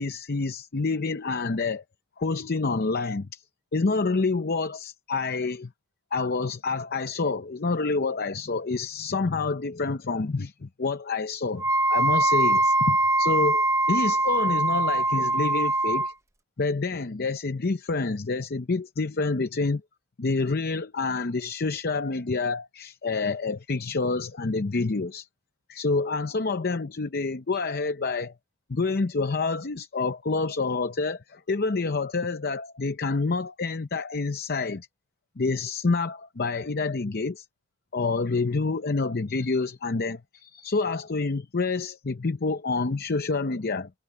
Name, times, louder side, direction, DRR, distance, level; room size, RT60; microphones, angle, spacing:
voice 1, 0.0-1.8 2.2-3.4 3.7-5.7 6.1-11.6 11.9-16.1 16.6-19.8 20.2-25.3 25.7-28.3 28.7-34.9 35.4-37.5 37.9-43.9, left 3 dB, 45° left, 0.7 m, -28 dB
Wind instrument woodwind instrument, 11.6-16.1, right 2 dB, 15° right, 0.9 m, -22 dB
head